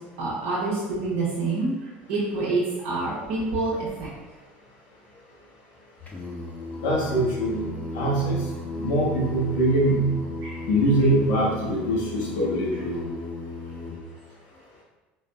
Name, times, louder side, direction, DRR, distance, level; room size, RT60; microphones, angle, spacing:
voice 1, 0.2-1.7 2.1-4.1 10.4-10.6, right 3 dB, 60° right, -8 dB, 1.0 m, -27 dB
Singing, 6.1-14.0, left 2 dB, 25° left, 0.9 m, -35 dB
voice 2, 6.8-7.6 7.9-8.4 8.7-10.0 10.7-13.0, right 1 dB, 65° left, -5 dB, 1.4 m, -23 dB
4.6 x 3.2 x 2.4 m, 1.2 s
hypercardioid pair, 75°, 6 cm